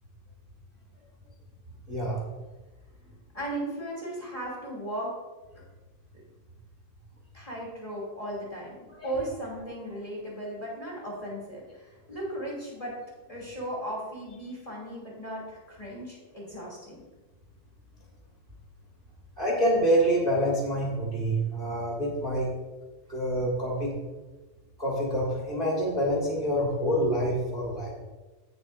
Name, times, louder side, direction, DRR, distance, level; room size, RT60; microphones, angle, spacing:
voice 1, 1.9-2.2 8.9-9.1 19.4-22.5 23.1-23.9 24.8-27.9, equal, 50° right, -3 dB, 0.6 m, -26 dB
voice 2, 3.3-5.1 7.3-8.8 9.0-13.0 13.3-17.0, right 1 dB, 10° left, -5 dB, 2.2 m, -36 dB
15.5 x 7.3 x 2.6 m, 1.2 s
omnidirectional pair, 4.5 m